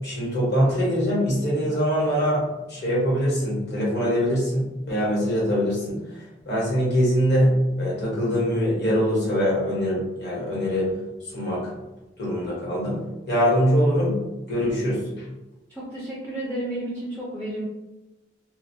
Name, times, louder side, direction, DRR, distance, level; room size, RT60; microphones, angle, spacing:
voice 1, 0.0-6.0 6.5-10.9 11.3-11.6 12.2-13.0 13.3-14.2 14.5-15.2, equal, 60° left, -6 dB, 1.1 m, -23 dB
voice 2, 15.7-17.6, right 1 dB, 10° left, -7 dB, 0.4 m, -32 dB
2.2 x 2.1 x 2.7 m, 1.0 s
head